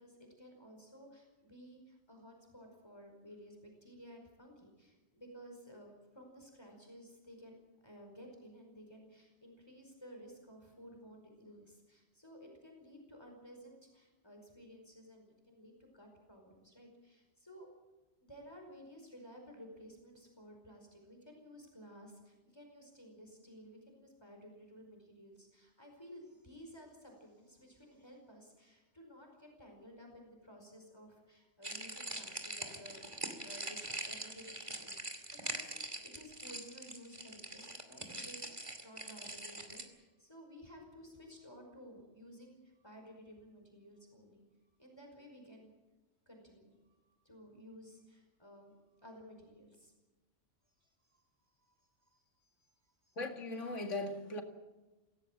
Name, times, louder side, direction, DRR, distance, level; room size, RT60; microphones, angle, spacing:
voice 1, 0.0-7.6 7.8-17.7 18.2-44.4 44.8-45.7 46.3-49.9 50.7-51.8 52.0-52.5 52.8-53.2, equal, 20° left, 5.2 m, -55 dB
sound 1, 31.6-39.8, right 1 dB, 25° right, 2.5 m, -43 dB
voice 2, 53.2-54.4, left 2 dB, 90° left, 2.5 m, -38 dB
25.5 x 17.0 x 7.5 m
omnidirectional pair, 1.2 m